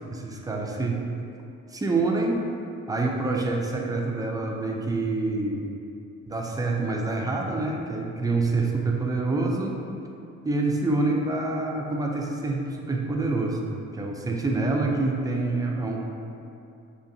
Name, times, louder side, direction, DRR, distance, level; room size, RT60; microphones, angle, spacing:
voice 1, 0.1-1.0 1.7-2.4 2.9-5.6 6.3-9.8 10.4-13.6 13.9-16.1, right 3 dB, 10° right, 0 dB, 0.4 m, -26 dB
4.0 x 2.8 x 2.7 m, 2.6 s
cardioid pair, 90°, 30 cm